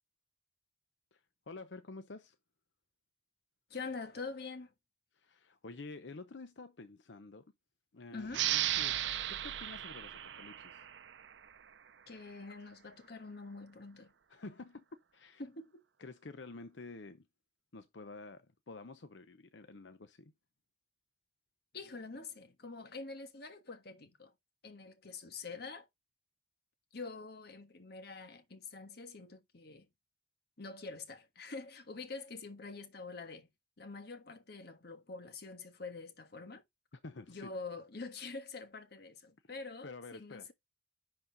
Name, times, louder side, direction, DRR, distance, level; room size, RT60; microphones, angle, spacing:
voice 1, 1.1-2.4 5.1-7.5 7.9-9.0 9.3-10.8 14.3-14.8 15.1-15.4 16.0-17.3 17.7-20.3 36.9-37.5 39.8-40.5, left 3 dB, 90° left, 0.8 m, -49 dB
voice 2, 3.7-4.7 8.1-8.4 12.1-14.1 15.4-15.8 21.7-24.3 24.6-25.9 26.9-29.9 30.6-33.5 33.8-36.6 37.3-40.5, left 4 dB, 65° left, 1.5 m, -46 dB
sound 1, 8.3-11.6, right 12 dB, 85° right, 0.6 m, -35 dB
10.5 x 4.2 x 4.0 m
head